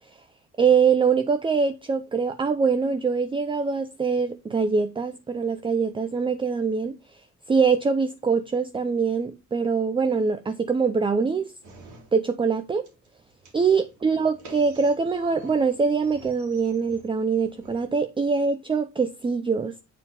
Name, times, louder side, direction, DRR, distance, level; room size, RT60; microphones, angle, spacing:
voice 1, 0.6-7.0 7.5-11.5 12.1-12.8 13.5-19.8, right 5 dB, 15° right, 0.4 m, -23 dB
sound 1, 11.6-12.6 12.8-17.8, right 2 dB, 75° right, 2.6 m, -48 dB
7.2 x 4.1 x 3.4 m
cardioid pair, 90°, 30 cm